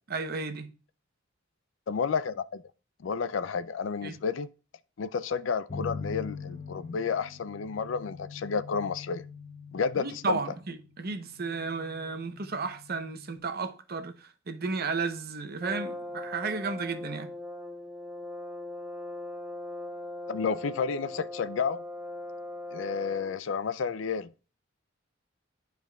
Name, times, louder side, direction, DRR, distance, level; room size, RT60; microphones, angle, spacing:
voice 1, 0.1-0.7 4.0-4.1 9.9-17.3, right 4 dB, 50° right, 0.8 m, -33 dB
voice 2, 1.9-2.6 3.0-4.5 5.0-9.2 9.7-10.4 20.3-21.8 22.7-24.5, left 5 dB, 70° left, 0.4 m, -31 dB
sound 1, 5.7-13.4, left 5 dB, 35° left, 0.7 m, -43 dB
Brass instrument, 15.6-23.4, left 2 dB, 5° right, 0.4 m, -40 dB
11.5 x 4.7 x 2.3 m
head